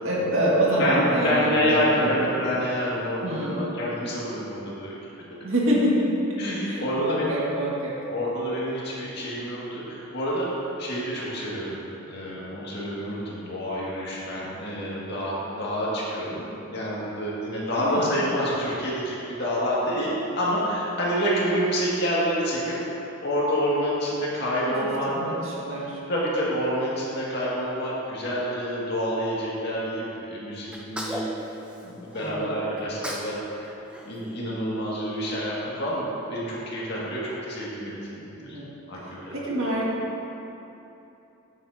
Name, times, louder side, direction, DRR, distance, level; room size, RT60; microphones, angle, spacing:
voice 1, 0.0-2.3 3.2-3.7 5.4-6.3 6.6-8.0 17.7-18.2 24.7-26.0 32.2-32.5 38.4-38.7 39.3-40.2, right 1 dB, 75° right, -5 dB, 1.8 m, -26 dB
voice 2, 0.8-4.9 5.3-5.4 6.4-7.4 8.1-10.5 10.8-11.8 12.0-16.4 16.7-22.7 23.2-25.2 26.1-31.2 31.8-33.7 34.0-38.6 38.9-39.4, equal, 50° left, -6 dB, 2.0 m, -28 dB
Sneeze, 30.7-32.3 32.8-33.4 33.6-35.1, equal, 5° right, 0.6 m, -37 dB
9.3 x 9.1 x 2.7 m, 3.0 s
head